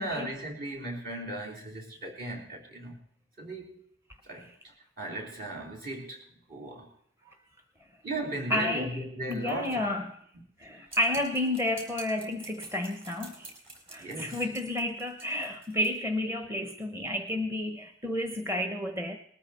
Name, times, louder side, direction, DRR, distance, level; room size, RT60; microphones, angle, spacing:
voice 1, 0.0-3.0 3.4-3.8 4.2-6.2 6.5-6.9 8.0-9.9 14.0-14.4, right 1 dB, 50° right, -1 dB, 3.9 m, -37 dB
voice 2, 8.5-9.0 9.3-10.2 10.6-13.5 13.9-19.2, left 1 dB, 15° right, 6 dB, 1.0 m, -31 dB
sound 1, 10.9-15.9, right 3 dB, 30° right, 4.3 m, -48 dB
20.0 x 13.5 x 4.4 m, 0.68 s
head